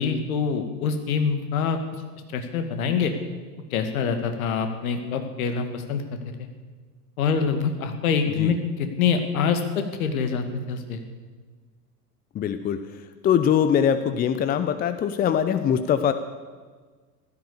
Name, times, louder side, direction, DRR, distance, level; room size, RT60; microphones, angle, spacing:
voice 1, 0.0-1.8 2.3-3.1 3.7-6.0 7.2-11.0, left 6 dB, 60° left, 7 dB, 2.1 m, -25 dB
voice 2, 12.3-16.1, left 8 dB, 20° left, 11 dB, 0.7 m, -23 dB
15.5 x 13.0 x 6.9 m, 1.4 s
figure-of-eight pair, 85°, 49 cm